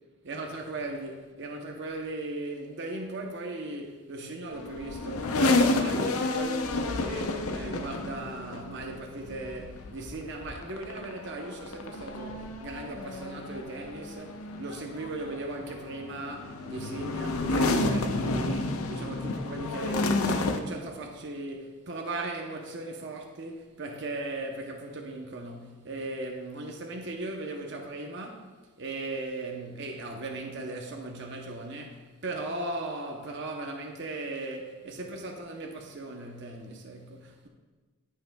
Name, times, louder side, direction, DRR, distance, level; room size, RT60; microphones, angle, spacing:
voice 1, 0.2-37.5, right 2 dB, 55° right, 0.7 m, -38 dB
sound 1, 4.5-20.6, left 2 dB, 80° left, 0.6 m, -30 dB
15.0 x 5.6 x 2.2 m
head